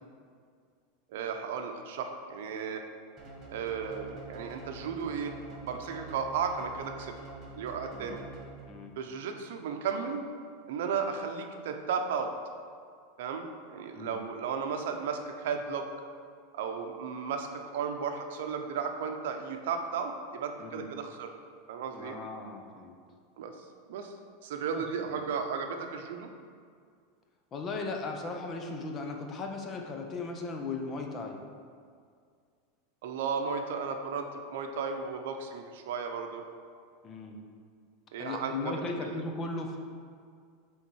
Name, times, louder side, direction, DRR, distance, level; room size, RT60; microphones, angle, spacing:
voice 1, 1.1-2.8 3.5-7.1 7.6-8.2 9.0-10.3 10.7-12.3 13.2-15.9 16.5-21.3 21.7-22.2 23.4-24.1 24.4-26.3 33.0-36.4 38.1-39.1, right 6 dB, 70° right, 5 dB, 0.7 m, -34 dB
sound 1, 3.2-8.9, right 2 dB, 20° right, 1.2 m, -46 dB
voice 2, 21.9-22.9 24.7-24.8 27.5-31.4 37.0-37.4 38.2-39.8, left 3 dB, 25° left, 3 dB, 0.7 m, -37 dB
7.0 x 3.6 x 4.6 m, 2.1 s
supercardioid pair, 155°, 0 cm